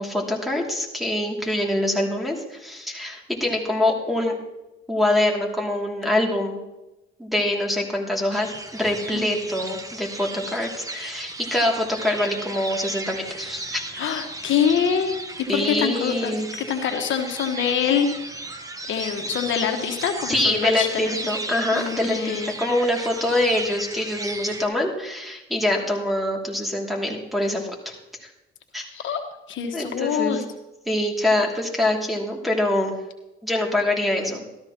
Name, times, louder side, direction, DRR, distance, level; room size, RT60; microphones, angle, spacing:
voice 1, 0.0-4.4 4.9-6.6 7.2-13.8 15.5-16.5 20.3-27.9 28.2-28.3 28.7-28.9 29.7-30.4 30.9-32.9 33.4-34.4, left 1 dB, ahead, -2 dB, 2.6 m, -24 dB
sound 1, 8.3-24.7, right 2 dB, 15° right, 1.1 m, -35 dB
voice 2, 14.0-16.3 16.6-18.1 18.9-21.2 21.7-22.5 28.9-29.2 29.5-30.4, left 8 dB, 75° left, 5 dB, 1.3 m, -25 dB
13.5 x 13.0 x 3.0 m, 0.96 s
cardioid pair, 90°, 20 cm